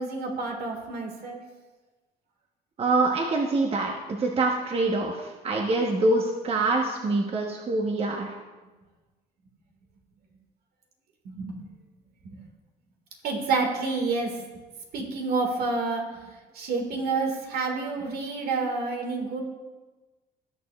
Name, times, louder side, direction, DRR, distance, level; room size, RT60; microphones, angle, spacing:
voice 1, 0.0-1.4 11.3-11.7 12.2-12.4 13.2-14.3 14.9-16.0 16.6-19.4, right 4 dB, 65° right, 2 dB, 1.9 m, -28 dB
voice 2, 2.8-8.3, right 2 dB, 35° right, 1 dB, 1.1 m, -25 dB
18.5 x 6.6 x 2.4 m, 1.2 s
cardioid pair, 110°, 17 cm